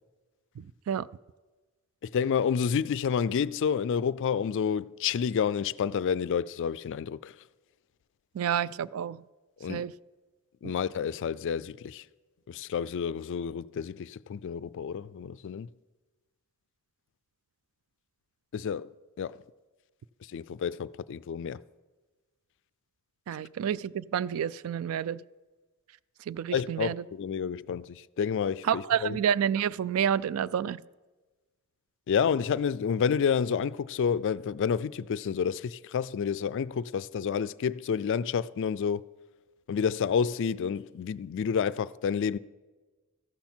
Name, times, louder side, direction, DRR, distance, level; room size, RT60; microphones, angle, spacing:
voice 1, 0.6-1.1 8.3-9.2 9.7-9.9 10.6-10.7 23.3-25.2 26.3-27.0 28.7-30.8, right 9 dB, 75° right, 0.3 m, -29 dB
voice 2, 2.0-7.4 9.6-9.8 10.6-12.0 12.5-15.7 18.5-18.9 19.2-19.4 20.3-21.6 26.5-29.2 32.1-39.0 39.7-42.4, left 7 dB, 60° left, 0.3 m, -29 dB
14.0 x 11.5 x 4.4 m
head